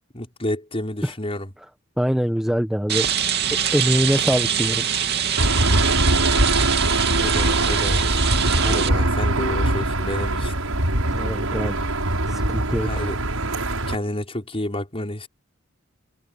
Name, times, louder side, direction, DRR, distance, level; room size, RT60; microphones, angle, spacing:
voice 1, 0.1-1.5 7.0-8.2 8.6-10.5 12.9-13.2 13.9-15.3, left 1 dB, 30° left, 5.6 m, -30 dB
voice 2, 2.0-3.1 3.7-4.9 11.1-11.9 12.3-13.1, equal, 5° right, 1.2 m, -23 dB
Rain, 2.9-8.9, right 8 dB, 50° right, 2.7 m, -24 dB
Aircraft / Engine, 5.4-13.9, right 1 dB, 85° right, 7.0 m, -22 dB
head